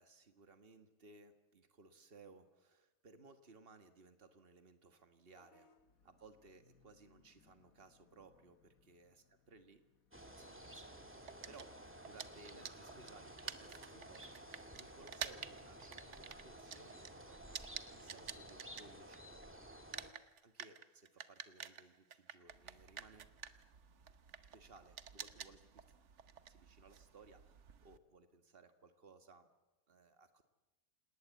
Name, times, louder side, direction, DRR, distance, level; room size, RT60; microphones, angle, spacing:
voice 1, 0.0-5.7 6.0-9.8 10.1-10.9 11.2-11.8 12.0-19.7 20.4-23.3 24.5-25.8 26.5-29.5 29.9-30.4, right 3 dB, 45° right, 8 dB, 1.9 m, -62 dB
Vehicle horn car horn honking / Bus, 5.3-11.4, left 5 dB, 90° left, 2.1 m, -73 dB
sound 1, 10.1-20.1, right 1 dB, 10° right, 2.2 m, -54 dB
sound 2, 11.3-19.4 19.7-28.0, right 7 dB, 60° right, 1.3 m, -50 dB
28.0 x 19.0 x 8.3 m, 1.0 s
omnidirectional pair, 1.4 m